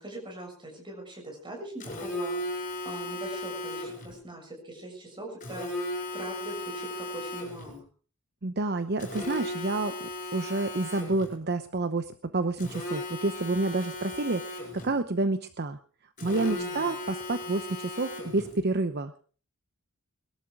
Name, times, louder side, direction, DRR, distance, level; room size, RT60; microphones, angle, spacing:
voice 1, 0.0-2.4 2.8-7.8 16.5-17.0, right 2 dB, 20° right, 2 dB, 6.8 m, -42 dB
Telephone, 1.8-4.1 5.4-7.8 9.0-11.4 12.6-15.0 16.2-18.6, left 1 dB, 35° left, 6.1 m, -36 dB
voice 2, 8.4-9.9 10.3-15.8 16.2-19.2, right 2 dB, 50° right, 10 dB, 0.9 m, -29 dB
21.5 x 12.5 x 4.7 m, 0.41 s
head